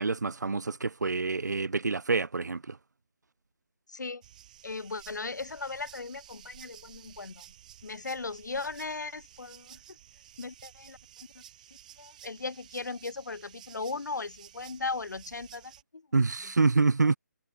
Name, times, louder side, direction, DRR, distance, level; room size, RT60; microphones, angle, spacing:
voice 1, 0.0-2.8 16.1-17.2, right 4 dB, 80° right, 3.0 m, -27 dB
voice 2, 3.9-4.2 4.6-7.4 7.8-9.8 10.4-11.0 11.3-11.4 12.0-16.0, left 3 dB, 85° left, 2.4 m, -37 dB
sound 1, 4.2-15.8, right 11 dB, 25° right, 4.5 m, -53 dB
hypercardioid pair, 170°, 9 cm